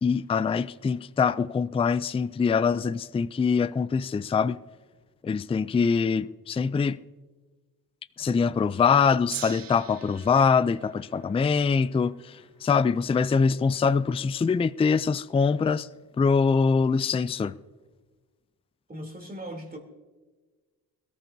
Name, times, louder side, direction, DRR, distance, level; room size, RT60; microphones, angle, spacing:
voice 1, 0.0-4.6 5.2-7.0 8.2-15.9 16.2-17.6, left 5 dB, 15° left, 0.3 m, -24 dB
Gong, 9.3-15.7 16.4-16.5, right 10 dB, 60° right, 0.7 m, -45 dB
voice 2, 18.9-19.8, right 1 dB, 25° right, 3.2 m, -38 dB
21.5 x 14.0 x 2.7 m
cardioid pair, 65°, 38 cm